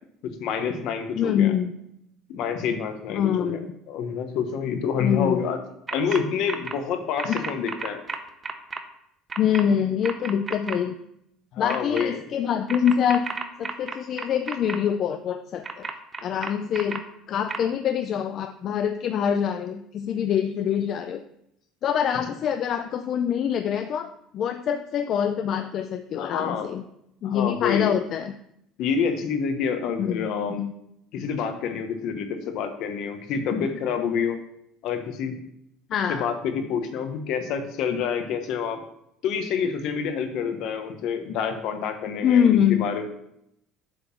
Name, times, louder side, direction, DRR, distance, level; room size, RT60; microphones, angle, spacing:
voice 1, 0.4-1.5 2.3-3.6 3.9-5.6 5.9-8.0 11.5-12.2 26.2-26.7 27.2-27.9 28.8-30.6 31.1-34.4 34.8-35.3 36.1-38.8 39.2-43.0, left 6 dB, 60° left, 7 dB, 1.0 m, -27 dB
voice 2, 1.1-1.7 3.1-3.7 5.0-5.4 7.3-7.4 9.4-10.9 11.6-13.3 13.6-15.9 16.2-17.0 17.3-21.2 21.8-26.8 27.2-28.3 30.0-30.3 30.6-30.7 31.2-31.3 35.9-36.3 42.2-42.8, left 8 dB, 45° left, 8 dB, 0.4 m, -25 dB
sound 1, 5.9-6.2 6.5-6.7 7.2-8.8 9.3-9.6 10.0-10.7 11.7-12.0 12.7-14.8 15.6-17.0 17.5-17.6, right 5 dB, 25° right, 0.7 m, -32 dB
7.7 x 3.7 x 6.0 m, 0.76 s
cardioid pair, 130°, 0 cm